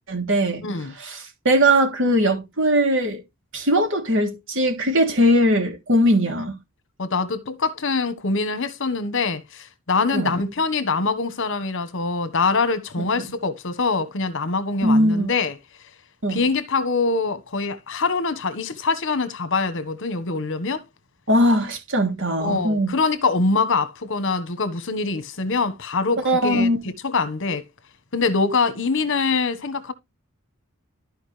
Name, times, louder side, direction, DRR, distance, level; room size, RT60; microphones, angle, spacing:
voice 1, 0.1-0.6 1.0-3.2 3.5-6.6 10.1-10.3 13.2-13.3 14.8-15.3 16.2-16.4 21.3-22.9 26.2-26.8, equal, 60° right, 3.1 m, -20 dB
voice 2, 7.0-15.5 16.3-20.8 22.4-27.7 28.1-29.9, left 4 dB, 60° left, 1.3 m, -24 dB
13.5 x 5.1 x 3.3 m
head